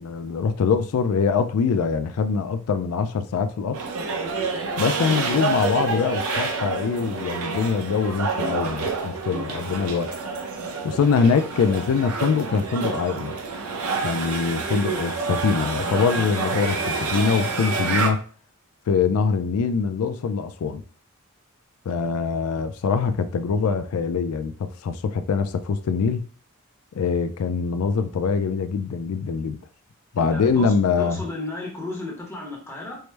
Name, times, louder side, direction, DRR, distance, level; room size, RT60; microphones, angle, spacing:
voice 1, 0.0-3.8 4.8-10.1 10.8-13.4 14.0-18.2 18.9-20.8 21.9-26.2 26.9-29.6 30.1-31.2, left 5 dB, 90° left, 0.4 m, -23 dB
sound 1, 3.7-18.1, right 4 dB, 90° right, 0.6 m, -28 dB
voice 2, 30.2-33.0, left 2 dB, 10° left, 0.8 m, -34 dB
4.5 x 2.0 x 3.2 m
head